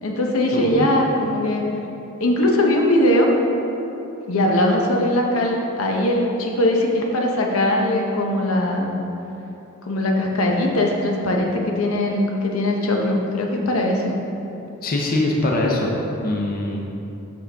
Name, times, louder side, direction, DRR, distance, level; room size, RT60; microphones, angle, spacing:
voice 1, 0.0-1.7 2.2-3.3 4.3-9.0 9.8-14.1, left 1 dB, 90° left, 0 dB, 0.8 m, -20 dB
voice 2, 0.5-0.9 14.8-15.9 16.2-16.9, left 2 dB, 45° left, -1 dB, 0.6 m, -22 dB
6.1 x 5.8 x 3.4 m, 2.9 s
head